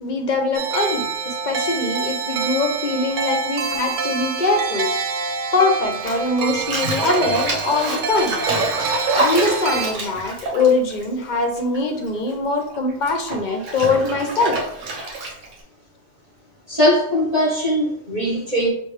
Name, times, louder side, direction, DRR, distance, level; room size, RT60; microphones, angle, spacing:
voice 1, 0.0-4.9 5.5-8.4 9.1-14.6, left 3 dB, 45° left, 4 dB, 0.7 m, -22 dB
sound 1, 0.5-9.9, right 4 dB, 55° right, 0.6 m, -26 dB
Bathtub (filling or washing), 5.9-11.8 12.0-15.6, right 2 dB, 75° right, 1.4 m, -27 dB
voice 2, 16.7-18.7, equal, 35° right, -5 dB, 1.1 m, -20 dB
6.4 x 2.5 x 3.2 m, 0.72 s
omnidirectional pair, 1.3 m